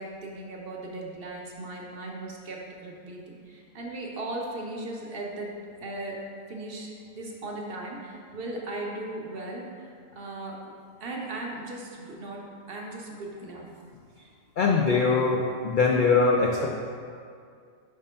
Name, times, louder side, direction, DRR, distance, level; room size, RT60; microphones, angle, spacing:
voice 1, 0.0-10.7 11.0-13.7, right 2 dB, 55° right, -1 dB, 0.8 m, -37 dB
voice 2, 14.6-16.7, left 4 dB, 70° left, 0 dB, 0.4 m, -22 dB
5.1 x 3.6 x 5.5 m, 2.3 s
omnidirectional pair, 1.4 m